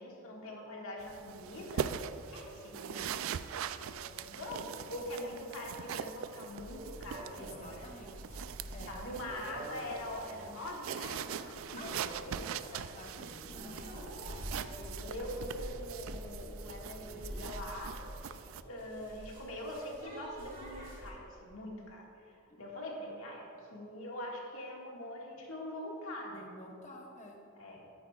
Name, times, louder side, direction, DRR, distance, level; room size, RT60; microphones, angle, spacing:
voice 1, 0.0-2.0 2.3-3.1 3.6-7.8 8.9-12.0 12.3-13.0 13.5-17.9 18.6-26.4 27.6-27.8, left 1 dB, 75° left, -2 dB, 1.8 m, -43 dB
sound 1, 1.0-18.6, right 8 dB, 70° right, 0.3 m, -42 dB
voice 2, 2.7-3.0 7.4-8.4 8.7-9.0 11.7-12.5 12.9-13.9 26.3-27.4, left 1 dB, 35° left, 0 dB, 1.0 m, -50 dB
sound 2, 6.5-21.1, equal, 40° right, 2.3 m, -47 dB
13.0 x 10.0 x 2.4 m, 2.7 s
head